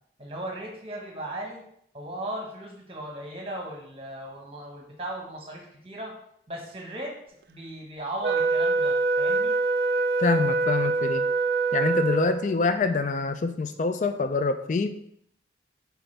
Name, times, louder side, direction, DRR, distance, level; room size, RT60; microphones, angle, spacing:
voice 1, 0.2-1.6 1.9-6.2 6.5-9.6, right 1 dB, 30° right, 1 dB, 1.3 m, -37 dB
Wind instrument woodwind instrument, 8.2-12.6, right 3 dB, 55° right, 0.4 m, -24 dB
voice 2, 10.2-11.3 11.7-15.0, left 4 dB, 40° left, 9 dB, 0.3 m, -25 dB
7.9 x 4.7 x 3.4 m, 0.70 s
head